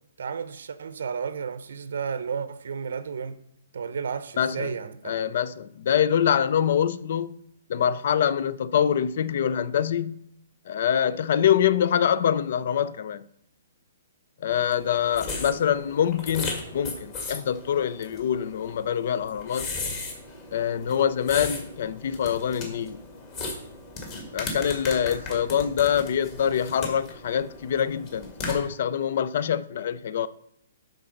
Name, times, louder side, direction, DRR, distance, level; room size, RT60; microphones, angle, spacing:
voice 1, 0.2-3.4 3.7-5.0, right 6 dB, 75° right, 0.7 m, -32 dB
voice 2, 4.4-4.7 5.0-7.4 7.7-10.3 10.7-13.3 14.4-19.7 20.5-23.0 24.3-30.3, left 9 dB, 55° left, 0.4 m, -25 dB
sound 1, 14.5-28.6, left 3 dB, 30° left, 1.9 m, -37 dB
11.5 x 4.0 x 5.2 m
hypercardioid pair, 160°, 0 cm